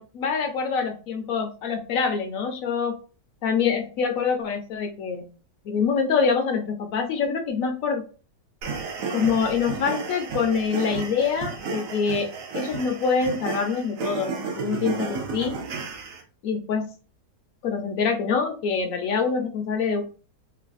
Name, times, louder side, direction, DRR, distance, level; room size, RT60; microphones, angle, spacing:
voice 1, 0.0-3.0 3.4-5.3 5.6-8.0 9.1-12.3 12.5-15.6 16.4-16.9 17.6-20.0, left 5 dB, 70° left, 5 dB, 0.9 m, -25 dB
sound 1, 8.6-16.2, right 5 dB, 65° right, 1.0 m, -33 dB
3.1 x 2.3 x 2.5 m, 0.36 s
omnidirectional pair, 1.7 m